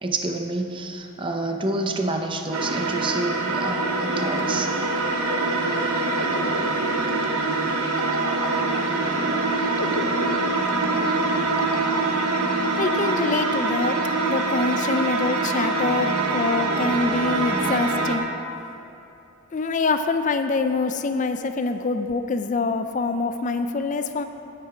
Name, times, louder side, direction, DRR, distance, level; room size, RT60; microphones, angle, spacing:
voice 1, 0.0-4.7, right 2 dB, 20° right, 4 dB, 0.7 m, -28 dB
sound 1, 2.5-18.2, right 3 dB, 80° right, 1.0 m, -24 dB
sound 2, 4.1-14.5, left 3 dB, 70° left, 0.7 m, -37 dB
voice 2, 12.8-18.3 19.5-24.2, left 3 dB, 35° left, 8 dB, 0.4 m, -25 dB
10.5 x 9.4 x 4.9 m, 2.7 s
head